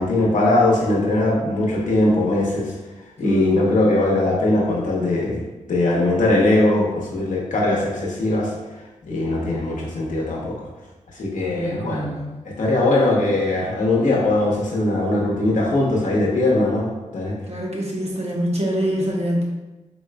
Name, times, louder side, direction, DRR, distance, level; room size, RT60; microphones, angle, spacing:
voice 1, 0.0-2.7 3.2-5.4 5.7-8.5 9.0-10.6 11.1-12.1 12.4-17.3, left 2 dB, 80° left, -4 dB, 0.9 m, -20 dB
voice 2, 3.2-3.7 11.6-12.3 17.5-19.4, equal, 55° right, -3 dB, 1.0 m, -24 dB
4.2 x 3.0 x 2.3 m, 1.1 s
cardioid pair, 60°, 13 cm